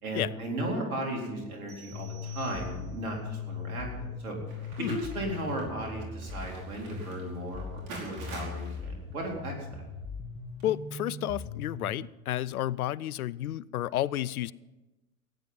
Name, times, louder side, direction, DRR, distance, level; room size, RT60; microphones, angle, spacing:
voice 1, 0.0-4.4 4.8-9.8, right 1 dB, 85° right, 0 dB, 4.1 m, -36 dB
sound 1, 1.7-3.2, right 9 dB, 15° right, 3.6 m, -52 dB
sound 2, 1.9-11.9, left 4 dB, 30° left, 1.8 m, -40 dB
sound 3, 4.5-11.2, right 2 dB, 60° right, 5.1 m, -48 dB
voice 2, 10.6-14.5, left 13 dB, 90° left, 21 dB, 0.5 m, -31 dB
16.0 x 9.8 x 5.7 m, 1.1 s
hypercardioid pair, 85°, 42 cm